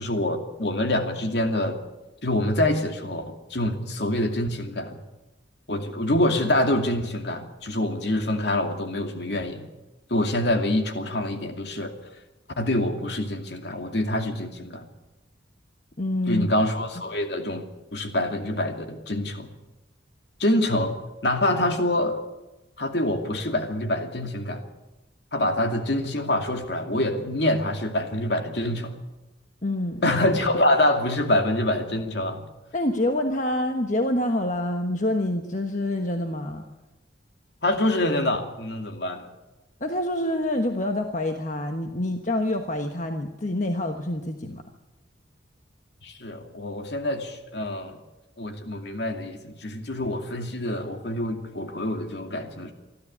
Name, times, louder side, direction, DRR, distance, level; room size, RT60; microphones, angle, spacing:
voice 1, 0.0-1.8 2.2-5.0 5.7-9.7 10.1-11.9 12.6-14.9 16.3-19.5 20.4-20.9 21.2-22.2 22.8-24.6 25.3-29.0 30.0-32.4 37.6-39.3 46.0-48.0 48.4-52.7, left 1 dB, 60° left, 5 dB, 2.5 m, -26 dB
voice 2, 16.0-16.5 29.6-30.0 32.7-36.6 39.8-44.6, left 1 dB, 40° left, 5 dB, 1.3 m, -26 dB
24.5 x 13.0 x 8.7 m, 1.1 s
head